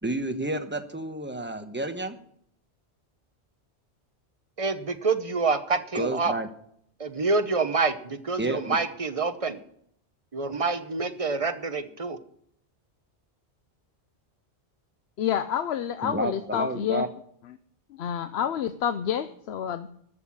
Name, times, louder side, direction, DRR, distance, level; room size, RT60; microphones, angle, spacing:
voice 1, 0.0-2.2 5.9-6.5 8.4-8.8 16.0-17.1, right 2 dB, 10° right, 6 dB, 1.1 m, -30 dB
voice 2, 4.6-6.3 7.0-9.6 10.3-12.2, right 4 dB, 35° right, 10 dB, 0.9 m, -27 dB
voice 3, 15.2-17.0 18.0-19.9, left 9 dB, 70° left, 11 dB, 0.9 m, -28 dB
13.5 x 6.5 x 8.7 m, 0.66 s
omnidirectional pair, 1.1 m